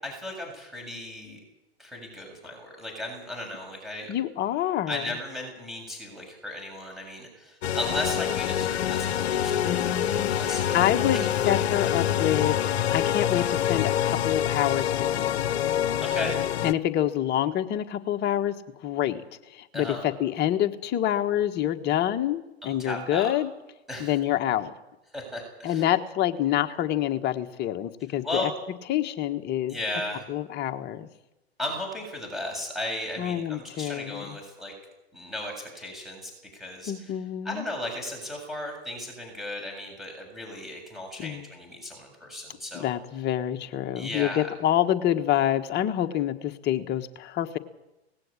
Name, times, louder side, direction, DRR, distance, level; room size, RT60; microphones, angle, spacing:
voice 1, 0.0-1.4 1.8-4.1 4.9-10.8 11.1-11.3 16.0-16.4 19.7-20.0 22.6-23.3 23.9-24.1 25.1-25.8 28.2-28.5 29.7-30.2 31.6-34.7 35.1-37.1 37.4-42.9 44.0-44.4, left 1 dB, ahead, 1 dB, 7.4 m, -35 dB
voice 2, 4.1-5.1 9.6-15.4 16.6-19.2 19.5-23.5 24.0-24.7 25.6-28.5 28.9-29.8 30.3-31.1 33.2-34.4 36.9-37.7 41.2-41.4 42.7-47.6, left 11 dB, 30° left, 7 dB, 1.5 m, -27 dB
sound 1, 7.6-16.7, left 10 dB, 65° left, 1.0 m, -26 dB
19.0 x 16.5 x 8.8 m, 0.95 s
hypercardioid pair, 110°, 33 cm